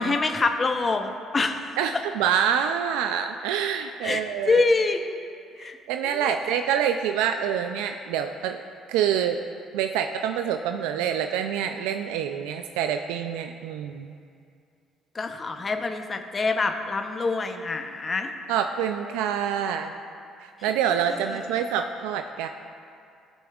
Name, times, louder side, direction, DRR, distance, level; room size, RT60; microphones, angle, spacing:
voice 1, 0.0-1.8 4.0-5.2 5.6-5.8 6.0-6.5 15.1-18.3 20.6-21.4, left 3 dB, 35° left, 6 dB, 0.7 m, -26 dB
voice 2, 1.8-4.6 5.6-8.6 8.9-9.4 9.7-14.1 18.5-19.9 20.4-22.5, right 8 dB, 90° right, 6 dB, 0.3 m, -26 dB
15.5 x 6.2 x 2.4 m, 2.4 s
supercardioid pair, 75°, 0 cm